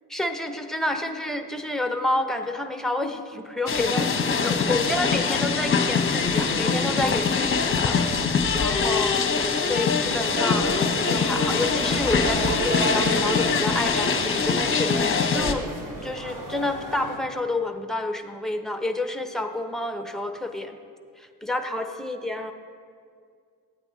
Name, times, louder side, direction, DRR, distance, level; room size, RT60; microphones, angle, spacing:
voice 1, 0.1-8.0 8.6-9.2 9.6-10.8 11.0-15.7 16.0-20.8 21.2-22.5, left 1 dB, ahead, 6 dB, 1.0 m, -29 dB
sound 1, 3.7-15.5, left 5 dB, 25° left, 1.2 m, -23 dB
sound 2, 10.2-17.2, right 1 dB, 40° right, 2.8 m, -32 dB
14.5 x 8.8 x 4.1 m, 2.2 s
hypercardioid pair, 55°, 46 cm